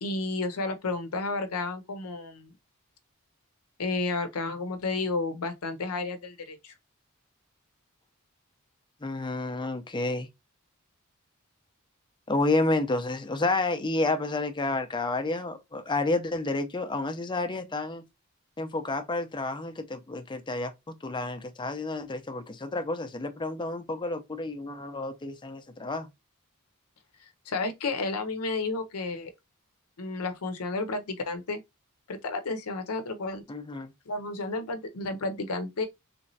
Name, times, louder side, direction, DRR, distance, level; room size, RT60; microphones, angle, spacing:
voice 1, 0.0-2.5 3.8-6.7 27.5-29.3 30.0-31.6 32.1-33.4 34.1-35.9, left 3 dB, 85° left, 0.7 m, -31 dB
voice 2, 9.0-10.3 12.3-18.0 18.6-20.7 21.0-26.1 33.5-33.9, left 2 dB, 20° left, 0.5 m, -30 dB
3.3 x 3.0 x 2.6 m
head